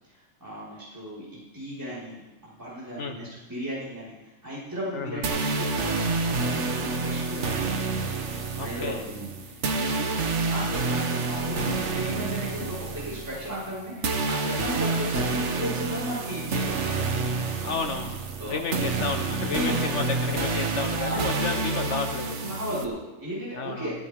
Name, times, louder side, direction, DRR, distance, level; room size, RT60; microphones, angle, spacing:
voice 1, 0.1-4.1 4.4-7.7 8.6-10.1 10.4-17.2 18.4-18.6 19.5-19.8 20.9-21.2 22.4-23.9, equal, 15° right, -10 dB, 5.0 m, -35 dB
voice 2, 3.0-3.3 4.9-5.2 8.6-9.0 17.6-18.2 18.5-22.4 23.5-23.9, left 4 dB, 65° left, 5 dB, 1.5 m, -31 dB
sound 1, 5.2-22.8, right 3 dB, 65° right, 1.4 m, -28 dB
18.0 x 14.0 x 3.7 m, 1.1 s
omnidirectional pair, 1.3 m